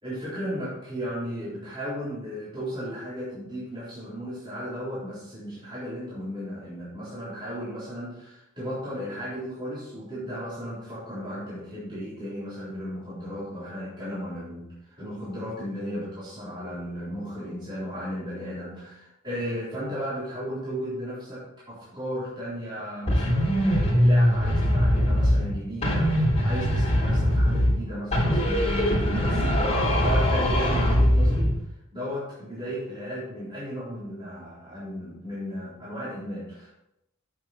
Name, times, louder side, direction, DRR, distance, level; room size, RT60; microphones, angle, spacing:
voice 1, 0.0-8.3 8.6-31.5 31.9-36.7, equal, 20° right, -10 dB, 3.7 m, -35 dB
sound 1, 23.1-25.5 25.8-27.8 28.1-31.6, equal, 30° left, 3.6 m, -22 dB
9.1 x 7.9 x 4.3 m, 0.84 s
head